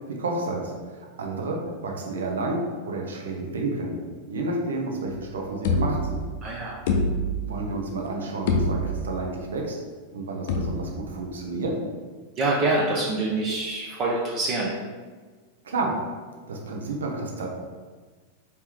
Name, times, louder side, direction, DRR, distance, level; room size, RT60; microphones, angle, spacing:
voice 1, 0.1-4.0 4.3-6.2 7.4-9.8 10.1-11.8 15.6-16.0 16.5-17.5, right 2 dB, 65° right, 0 dB, 0.8 m, -30 dB
sound 1, 5.6-6.4 6.9-7.7 8.1-8.2 8.5-9.2 10.5-11.1, left 2 dB, 55° left, 0.5 m, -25 dB
voice 2, 6.4-6.8 12.4-14.7, right 2 dB, 30° right, -4 dB, 0.7 m, -25 dB
4.4 x 2.9 x 3.7 m, 1.4 s
figure-of-eight pair, 90°, 0 cm